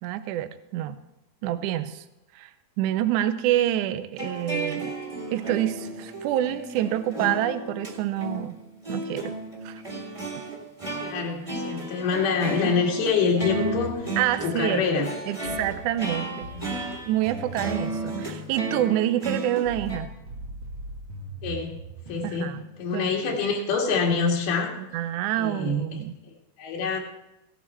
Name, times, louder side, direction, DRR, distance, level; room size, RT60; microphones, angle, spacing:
voice 1, 0.0-1.0 1.4-2.0 2.4-2.5 2.8-4.9 5.3-8.6 8.9-9.4 9.7-9.8 12.6-12.7 14.2-14.8 15.3-16.5 17.1-20.1 22.2-22.6 22.9-23.1 24.9-26.1, right 12 dB, 85° right, 11 dB, 1.8 m, -27 dB
sound 1, 4.2-20.0, right 2 dB, 10° right, 1.5 m, -34 dB
voice 2, 11.0-15.1 15.4-15.5 16.6-16.7 21.4-21.8 22.1-22.5 22.8-24.7 25.4-26.0 26.6-27.0, left 5 dB, 85° left, 0 dB, 3.9 m, -26 dB
sound 2, 13.4-23.2, right 2 dB, 60° right, 1.3 m, -41 dB
16.5 x 12.0 x 4.4 m, 0.89 s
omnidirectional pair, 4.3 m